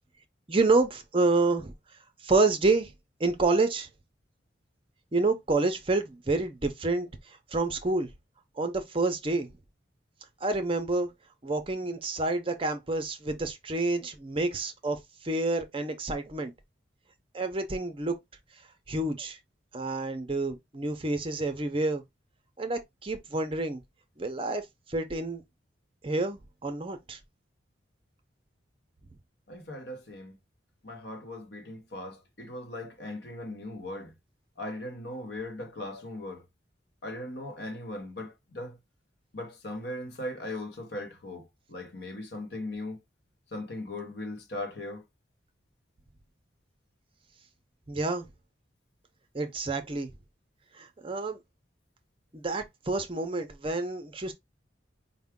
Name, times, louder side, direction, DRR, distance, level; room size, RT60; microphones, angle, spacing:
voice 1, 0.5-1.7 2.2-2.9 3.2-3.9 5.1-7.1 7.5-8.1 8.6-9.5 10.4-11.1 11.4-15.0 15.2-16.5 17.3-18.2 18.9-19.4 19.7-22.0 22.6-23.8 24.2-25.4 26.0-27.2 47.9-48.3 49.3-50.1 50.8-51.4 52.3-54.3, right 3 dB, 30° right, 0.6 m, -28 dB
voice 2, 29.5-30.4 30.8-34.1 34.6-36.4 37.0-38.8 39.3-43.0 43.5-45.0, left 1 dB, 65° left, 1.1 m, -39 dB
4.8 x 2.1 x 3.6 m
head